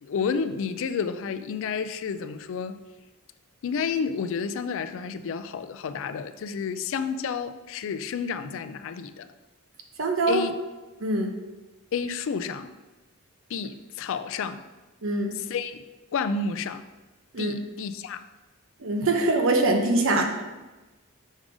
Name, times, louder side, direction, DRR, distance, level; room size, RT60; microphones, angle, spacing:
voice 1, 0.0-2.8 3.6-9.3 10.3-10.5 11.9-12.7 13.5-14.6 15.3-15.8 16.1-16.8 17.4-18.2, left 6 dB, 65° left, 11 dB, 0.4 m, -30 dB
voice 2, 10.0-10.4 11.0-11.3 15.0-15.3 17.3-17.6 18.8-20.2, right 2 dB, 65° right, 4 dB, 0.8 m, -23 dB
6.3 x 3.8 x 4.9 m, 1.2 s
head